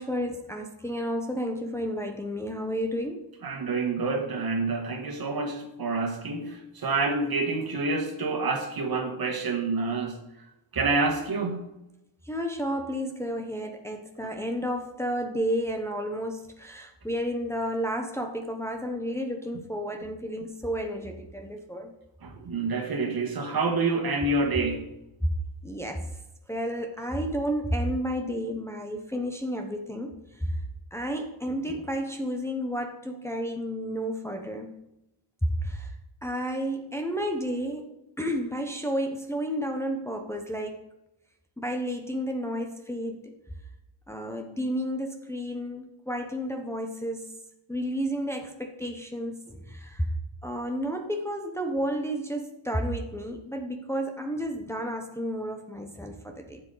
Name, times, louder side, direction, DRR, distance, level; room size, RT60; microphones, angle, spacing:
voice 1, 0.0-3.3 12.2-21.9 25.2-25.3 25.6-26.1 26.5-30.6 30.9-34.7 35.6-35.9 36.2-37.9 38.2-40.9 41.6-43.3 44.1-47.3 47.7-50.1 50.4-56.6, equal, 5° left, 2 dB, 0.9 m, -31 dB
voice 2, 3.4-10.2 10.7-11.7 22.2-24.9, right 3 dB, 50° right, 4 dB, 1.8 m, -28 dB
12.0 x 7.5 x 4.0 m, 0.94 s
cardioid pair, 105°, 47 cm